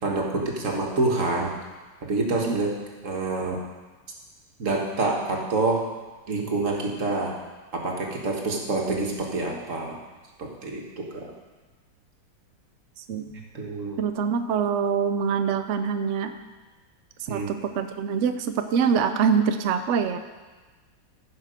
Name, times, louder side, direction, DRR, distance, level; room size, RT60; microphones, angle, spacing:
voice 1, 0.0-1.6 2.0-2.7 3.0-3.6 4.6-5.8 6.3-7.4 7.7-10.0 10.4-11.3 13.5-14.0 17.3-17.5, right 3 dB, 45° right, 0 dB, 1.7 m, -27 dB
voice 2, 14.0-16.3 17.2-20.2, right 6 dB, 80° right, 8 dB, 0.6 m, -24 dB
14.5 x 5.8 x 5.1 m, 1.3 s
omnidirectional pair, 1.9 m